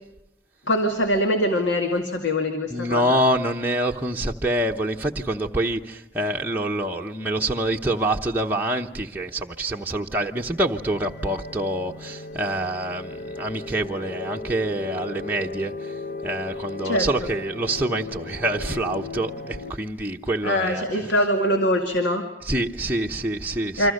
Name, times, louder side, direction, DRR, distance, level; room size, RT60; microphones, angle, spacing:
voice 1, 0.6-3.2 16.8-17.1 20.4-22.3 23.8-23.9, equal, 75° left, 4 dB, 2.3 m, -23 dB
voice 2, 2.7-20.8 22.4-23.9, right 1 dB, 10° right, -1 dB, 0.9 m, -26 dB
sound 1, 10.1-19.7, left 3 dB, 45° left, 1.3 m, -36 dB
29.0 x 25.5 x 6.6 m, 0.89 s
head